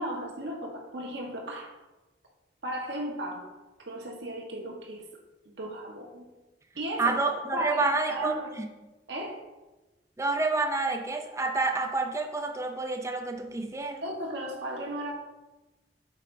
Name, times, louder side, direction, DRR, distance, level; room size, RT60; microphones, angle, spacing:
voice 1, 0.0-1.7 2.6-3.5 3.8-5.0 5.4-6.3 6.8-7.2 7.5-8.5 9.1-9.4 14.0-15.1, right 1 dB, 85° right, -1 dB, 1.3 m, -35 dB
voice 2, 7.0-8.7 10.2-14.0, right 3 dB, 15° right, 4 dB, 0.5 m, -29 dB
8.0 x 6.3 x 2.7 m, 1.1 s
head